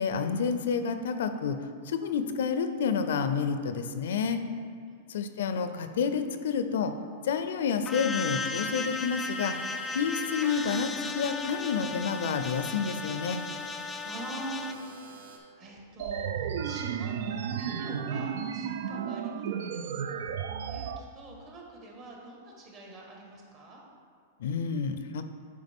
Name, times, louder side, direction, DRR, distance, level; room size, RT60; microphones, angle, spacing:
voice 1, 0.0-1.6 1.9-4.4 5.1-6.9 7.2-9.5 9.9-13.4 24.4-25.2, left 6 dB, 80° left, 9 dB, 0.5 m, -29 dB
voice 2, 4.8-5.3 14.0-20.3 20.7-23.8, right 2 dB, 35° right, -2 dB, 1.6 m, -45 dB
sound 1, 7.9-14.7, left 4 dB, 15° left, 0.4 m, -36 dB
sound 2, 8.5-15.4, right 4 dB, 80° right, 1.0 m, -49 dB
sound 3, 16.0-21.0, right 7 dB, 65° right, 0.4 m, -33 dB
9.6 x 4.8 x 3.6 m, 2.1 s
supercardioid pair, 150°, 0 cm